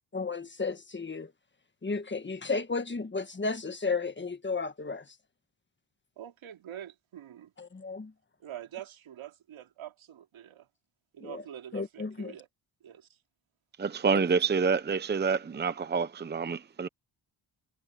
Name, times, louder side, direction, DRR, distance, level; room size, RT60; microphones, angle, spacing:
voice 1, 0.1-1.3 1.8-5.2 7.6-8.1 11.2-11.4 11.7-12.3 14.1-14.2, left 4 dB, 25° left, 1.5 m, -33 dB
voice 2, 6.2-7.5 8.4-10.7 11.1-12.5 12.8-13.1, right 11 dB, 85° right, 3.1 m, -45 dB
voice 3, 13.8-16.9, right 5 dB, 20° right, 0.8 m, -27 dB
wide cardioid pair, 125°, 47 cm